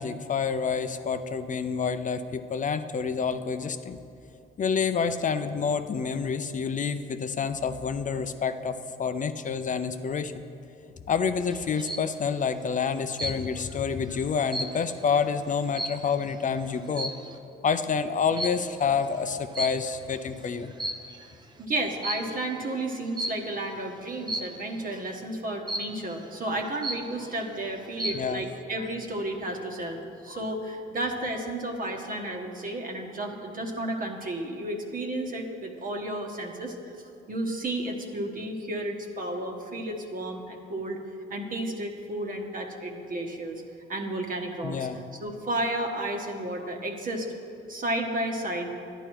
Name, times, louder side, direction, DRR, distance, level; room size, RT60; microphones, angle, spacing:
voice 1, 0.0-4.0 4.6-10.4 11.1-17.1 17.6-20.7 28.1-28.4 30.3-30.4 44.6-45.0, left 6 dB, 40° left, 10 dB, 0.6 m, -28 dB
sound 1, 11.5-12.1 13.2-13.7 14.1-16.4 16.9-17.4 18.4-18.8 19.6-20.2 20.6-21.3 22.0-22.4 23.2-23.6 24.3-24.7 25.7-26.2 26.6-26.7 26.8-27.4 27.8-28.3, right 1 dB, 20° right, 0.8 m, -34 dB
voice 2, 21.6-36.7 37.3-41.0 41.3-43.6 43.9-44.9 45.2-47.3 47.7-48.7, right 1 dB, 45° right, 2 dB, 1.3 m, -32 dB
11.0 x 10.0 x 4.6 m, 2.6 s
cardioid pair, 90°, 20 cm